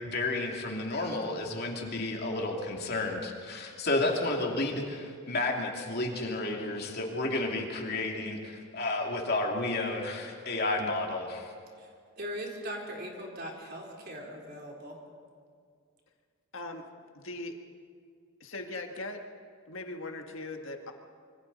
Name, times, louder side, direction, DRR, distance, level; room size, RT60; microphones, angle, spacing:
voice 1, 0.0-11.5, left 2 dB, 45° left, 0 dB, 2.8 m, -31 dB
voice 2, 12.2-15.0, equal, 45° right, -1 dB, 3.7 m, -40 dB
voice 3, 17.1-17.6 18.4-19.2 19.7-20.9, left 2 dB, 65° left, 4 dB, 1.6 m, -39 dB
26.0 x 24.5 x 4.2 m, 2.1 s
head